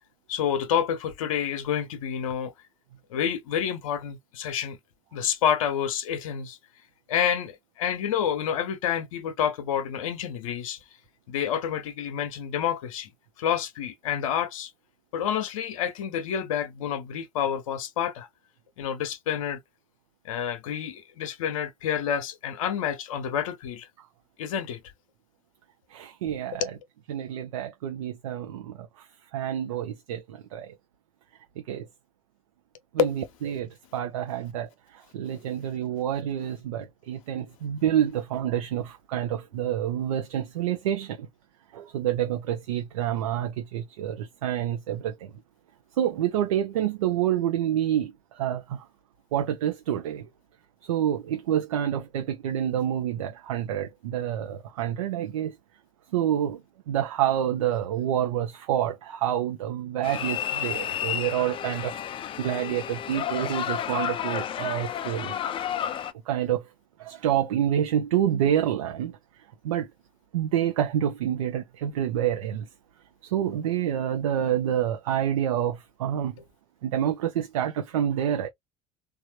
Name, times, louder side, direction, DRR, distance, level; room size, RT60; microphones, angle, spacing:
voice 1, 0.3-2.5 3.1-4.8 5.1-6.6 7.1-10.8 11.3-13.1 13.4-14.7 15.1-18.3 18.8-19.6 20.2-23.9 24.4-24.8 26.5-26.7 33.0-33.2, left 8 dB, 70° left, 0.7 m, -28 dB
voice 2, 25.9-26.6 27.1-28.7 29.3-30.7 31.7-31.9 32.9-33.1 33.4-34.7 35.1-41.3 41.7-45.3 46.0-48.1 48.4-48.8 49.3-50.3 50.9-55.5 56.1-56.6 56.9-62.0 62.4-65.3 66.3-66.6 67.0-69.2 69.6-69.9 70.3-72.7 73.2-76.3 76.8-78.5, right 10 dB, 70° right, 0.5 m, -27 dB
sound 1, 60.0-66.1, left 10 dB, 30° left, 0.4 m, -31 dB
3.2 x 2.4 x 2.9 m
figure-of-eight pair, 65°, 18 cm